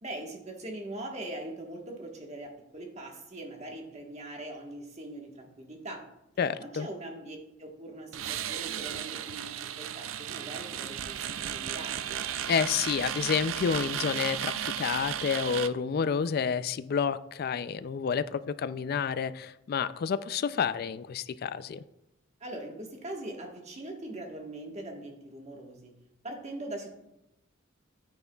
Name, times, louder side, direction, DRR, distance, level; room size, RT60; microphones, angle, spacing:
voice 1, 0.0-6.1 6.6-12.2 22.4-25.9 26.2-26.9, right 1 dB, 35° right, 1 dB, 1.3 m, -41 dB
voice 2, 6.4-6.9 12.5-21.8, left 6 dB, 50° left, 14 dB, 0.3 m, -29 dB
sound 1, 8.1-15.7, right 10 dB, 80° right, 0.4 m, -35 dB
9.5 x 9.2 x 2.3 m, 0.89 s
head